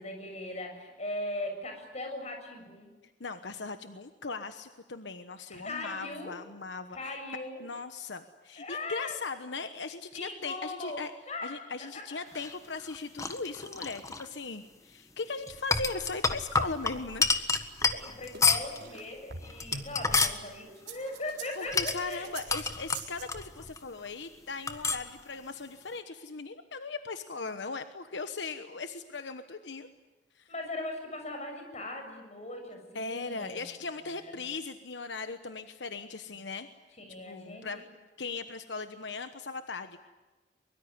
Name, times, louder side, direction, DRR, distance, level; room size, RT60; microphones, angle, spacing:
voice 1, 0.0-2.9 5.5-6.3 6.9-7.6 8.6-9.2 10.1-11.0 11.3-11.6 12.1-12.2 18.0-22.3 30.5-33.8 34.1-34.3 37.0-37.9, left 2 dB, 40° left, 4 dB, 7.1 m, -39 dB
voice 2, 3.2-7.2 7.6-11.1 11.4-17.4 21.6-29.9 30.3-30.5 32.9-36.7 37.3-37.8 38.2-40.0, left 4 dB, 80° left, 9 dB, 1.2 m, -38 dB
sound 1, 12.3-14.3 15.5-18.8 19.4-20.4 21.7-23.8 24.1-24.2 24.7-25.1, left 4 dB, 20° left, 1.5 m, -29 dB
sound 2, 17.0-20.3 20.8-23.3, right 5 dB, 70° right, 4.2 m, -44 dB
23.5 x 23.0 x 9.6 m, 1.3 s
head